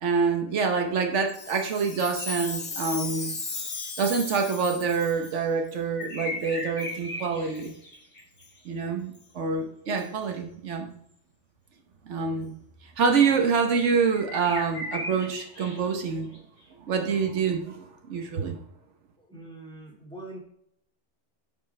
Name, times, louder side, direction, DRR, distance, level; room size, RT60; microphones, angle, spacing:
voice 1, 0.0-3.3 4.0-7.7 8.6-10.9 12.1-12.5 13.0-16.3 16.8-18.6, right 5 dB, 85° right, 5 dB, 1.3 m, -26 dB
Chime, 1.3-5.4 6.0-6.1 6.8-7.0 7.5-7.7 8.4-8.5 9.1-9.2 10.0-10.1, left 4 dB, 50° left, 1.2 m, -36 dB
sound 1, 1.9-2.5 3.8-3.9 5.9-8.6 14.0-16.4 16.6-16.7, left 1 dB, 65° left, 3.3 m, -37 dB
voice 2, 19.2-20.4, right 2 dB, 5° left, -3 dB, 2.1 m, -43 dB
8.9 x 5.0 x 3.3 m, 0.73 s
omnidirectional pair, 1.2 m